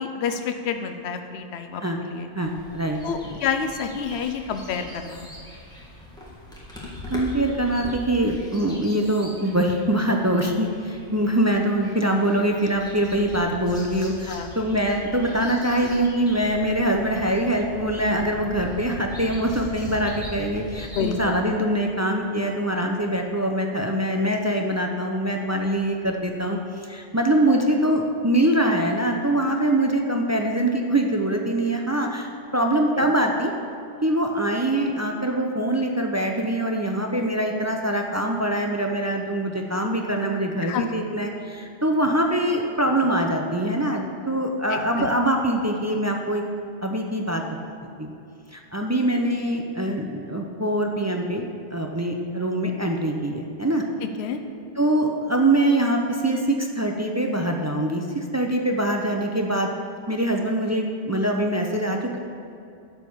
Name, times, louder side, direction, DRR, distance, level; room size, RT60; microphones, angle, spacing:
voice 1, 0.0-1.8 2.1-2.3 3.0-5.3 14.3-14.5 21.0-21.4 33.0-33.1 40.6-40.8 44.7-45.1 54.0-54.4, left 7 dB, 65° left, 7 dB, 0.9 m, -29 dB
voice 2, 2.3-3.4 7.1-33.5 34.0-46.4 46.8-47.7 48.0-48.1 48.5-53.8 54.8-59.7 60.1-62.2, right 1 dB, 20° right, 2 dB, 0.4 m, -24 dB
sound 1, 2.4-21.2, left 1 dB, 5° left, 1.6 m, -40 dB
11.5 x 4.7 x 7.2 m, 2.5 s
omnidirectional pair, 1.2 m